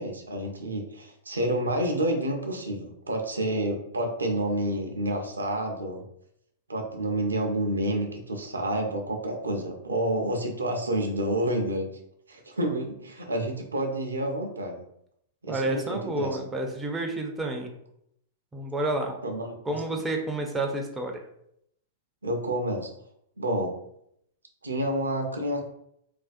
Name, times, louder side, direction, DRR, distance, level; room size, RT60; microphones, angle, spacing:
voice 1, 0.0-6.0 6.7-11.9 12.3-14.8 15.4-16.4 19.2-19.8 22.2-22.9 23.4-23.7 24.6-25.6, right 1 dB, 85° right, 2 dB, 0.5 m, -29 dB
voice 2, 15.5-17.7 18.5-19.1 19.7-21.2, right 2 dB, 10° right, 2 dB, 0.4 m, -30 dB
2.4 x 2.2 x 2.5 m, 0.74 s
figure-of-eight pair, 100°, 0 cm